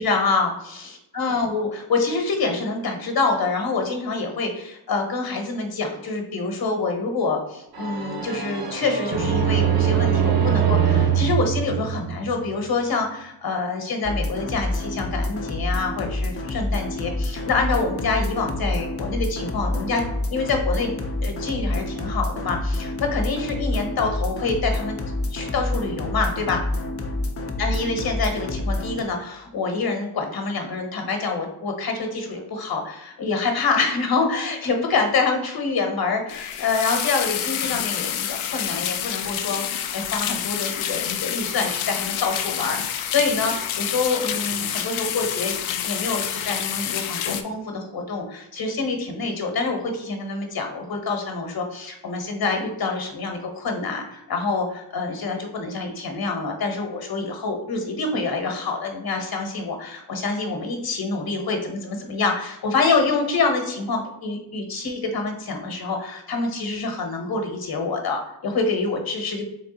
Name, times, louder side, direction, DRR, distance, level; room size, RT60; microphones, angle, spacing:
voice 1, 0.0-20.0 20.3-20.9 21.2-25.0 25.3-26.6 27.6-45.6 45.8-69.4, left 4 dB, 50° left, 4 dB, 1.2 m, -26 dB
sound 1, 7.7-12.5, right 8 dB, 50° right, 0.9 m, -22 dB
sound 2, 14.0-29.0, left 1 dB, 30° left, 0.7 m, -28 dB
sound 3, 36.3-47.4, left 10 dB, 85° left, 0.6 m, -28 dB
3.7 x 3.4 x 4.0 m, 0.83 s
cardioid pair, 65°, 47 cm